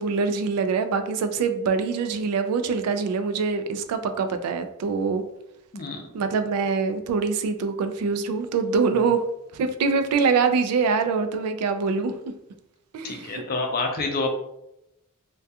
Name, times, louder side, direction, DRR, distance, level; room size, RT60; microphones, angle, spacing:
voice 1, 0.0-5.2 6.1-9.2 9.5-12.1 12.9-13.3, right 5 dB, 90° right, 10 dB, 0.3 m, -24 dB
voice 2, 13.0-14.3, left 3 dB, 45° left, 3 dB, 0.4 m, -28 dB
2.3 x 2.2 x 2.7 m, 0.84 s
head